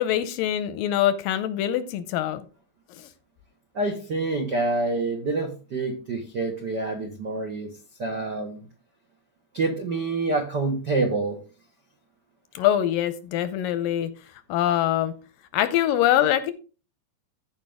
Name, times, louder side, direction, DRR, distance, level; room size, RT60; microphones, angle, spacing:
voice 1, 0.0-2.4 3.0-3.1 12.6-14.1 14.5-15.2 15.5-16.5, left 12 dB, 80° left, 12 dB, 2.2 m, -23 dB
voice 2, 3.7-7.7 8.0-8.6 9.5-11.4, right 3 dB, 90° right, 2 dB, 0.9 m, -27 dB
15.0 x 5.1 x 3.5 m, 0.34 s
omnidirectional pair, 4.3 m